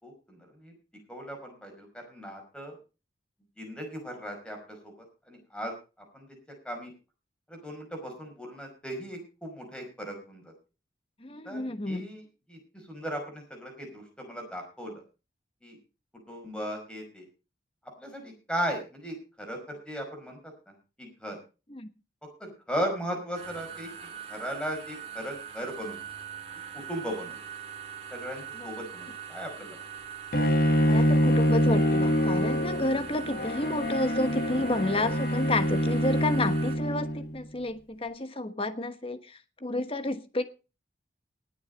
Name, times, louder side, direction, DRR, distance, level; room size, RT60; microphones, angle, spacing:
voice 1, 0.0-0.7 1.1-2.8 3.6-4.9 5.3-5.7 6.1-6.4 6.6-6.9 7.5-10.5 11.4-12.2 12.5-15.0 15.6-15.8 16.3-17.2 18.0-20.4 20.7-21.4 22.4-23.9 24.3-26.0 26.7-27.4 28.1-29.8, equal, 5° left, 2 dB, 5.1 m, -37 dB
voice 2, 11.2-12.1 21.7-21.9 28.6-28.7 30.8-40.5, left 2 dB, 30° left, 11 dB, 1.2 m, -30 dB
sound 1, 23.3-36.7, right 8 dB, 35° right, 2.7 m, -42 dB
Bowed string instrument, 30.3-37.4, equal, 50° left, 1.5 m, -25 dB
19.5 x 7.4 x 5.3 m, 0.33 s
head